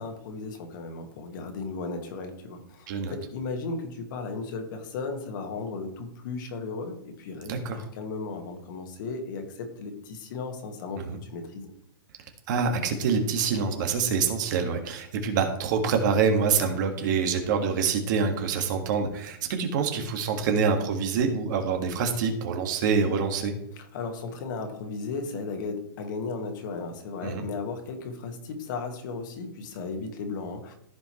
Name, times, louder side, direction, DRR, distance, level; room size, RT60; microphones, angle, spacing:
voice 1, 0.0-11.7 23.8-30.7, left 4 dB, 55° left, 5 dB, 1.8 m, -35 dB
voice 2, 7.5-7.9 11.0-11.2 12.5-23.5 27.2-27.5, right 5 dB, 55° right, 4 dB, 1.8 m, -26 dB
14.5 x 5.3 x 3.2 m, 0.76 s
hypercardioid pair, 150°, 12 cm